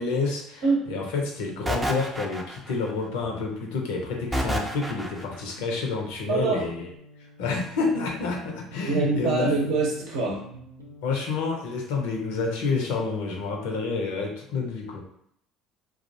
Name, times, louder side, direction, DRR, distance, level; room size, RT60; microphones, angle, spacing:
voice 1, 0.0-0.6 0.9-6.9 7.4-9.5 11.0-15.0, left 4 dB, 70° left, 1 dB, 0.5 m, -29 dB
sound 1, 1.7-2.9 4.3-5.4, right 1 dB, 15° right, 0.4 m, -29 dB
sound 2, 3.2-11.7, equal, 85° right, 0.4 m, -48 dB
voice 2, 6.3-6.7 8.9-10.4, right 3 dB, 65° right, -3 dB, 0.8 m, -24 dB
2.3 x 2.0 x 2.6 m, 0.69 s
hypercardioid pair, 60°, 0 cm